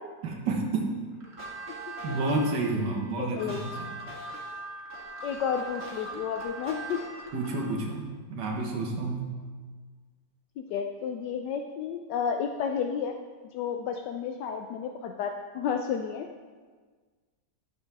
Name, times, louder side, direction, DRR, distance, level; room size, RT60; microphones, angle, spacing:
voice 1, 0.2-0.9 2.0-3.9 7.3-8.0 8.3-9.3, right 3 dB, 75° right, 0 dB, 1.9 m, -30 dB
sound 1, 1.2-7.8, right 2 dB, 35° right, 1.8 m, -40 dB
voice 2, 3.2-3.6 5.2-7.0 10.6-13.2 13.5-16.3, left 7 dB, 75° left, 4 dB, 1.2 m, -31 dB
12.5 x 7.0 x 3.5 m, 1.5 s
omnidirectional pair, 1.9 m